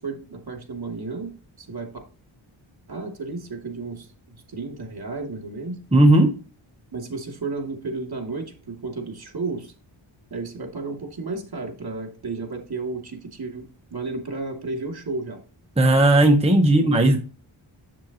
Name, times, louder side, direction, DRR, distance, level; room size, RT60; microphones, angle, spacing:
voice 1, 0.0-1.9 2.9-5.8 6.9-9.7 10.3-15.4 16.7-17.2, right 3 dB, 50° right, 2 dB, 2.8 m, -33 dB
voice 2, 5.9-6.3 15.8-17.2, right 1 dB, 10° right, 3 dB, 1.1 m, -16 dB
7.7 x 7.5 x 3.0 m, 0.35 s
wide cardioid pair, 75°, 49 cm